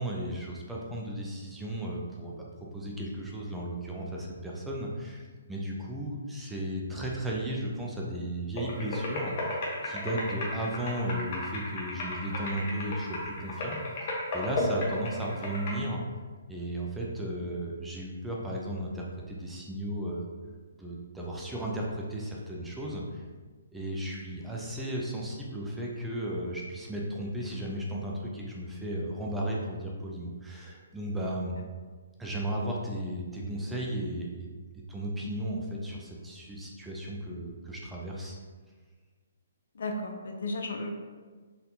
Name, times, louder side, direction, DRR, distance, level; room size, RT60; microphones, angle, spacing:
voice 1, 0.0-2.5 2.7-9.6 9.8-13.8 14.3-16.0 16.5-20.3 20.8-23.2 23.7-31.6 32.2-34.5 34.7-38.4, right 1 dB, 5° right, -3 dB, 0.5 m, -35 dB
sound 1, 8.6-15.7, left 1 dB, 45° left, 1.0 m, -34 dB
voice 2, 39.8-40.9, left 2 dB, 65° left, 4 dB, 0.5 m, -34 dB
4.1 x 2.6 x 2.7 m, 1.4 s
hypercardioid pair, 135°, 0 cm